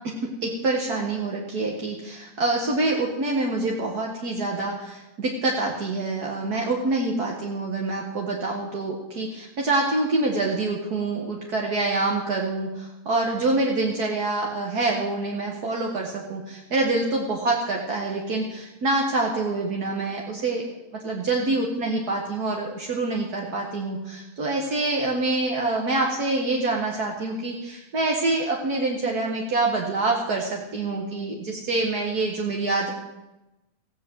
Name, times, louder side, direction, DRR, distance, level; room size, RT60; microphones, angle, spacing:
voice 1, 0.2-20.6 20.9-32.9, right 2 dB, 40° right, -1 dB, 1.4 m, -26 dB
16.0 x 9.3 x 8.1 m, 0.97 s
omnidirectional pair, 3.6 m